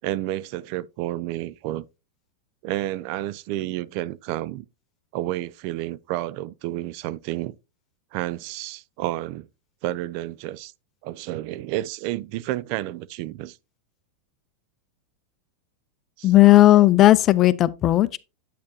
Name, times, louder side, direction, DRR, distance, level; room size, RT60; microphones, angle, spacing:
voice 1, 0.0-1.8 2.6-4.7 5.1-7.6 8.1-9.5 9.8-10.7 11.0-13.6 16.2-16.3, right 15 dB, 55° right, 0.3 m, -30 dB
voice 2, 16.2-18.2, left 15 dB, 40° left, 0.4 m, -15 dB
8.4 x 6.4 x 2.7 m
hypercardioid pair, 100°, 0 cm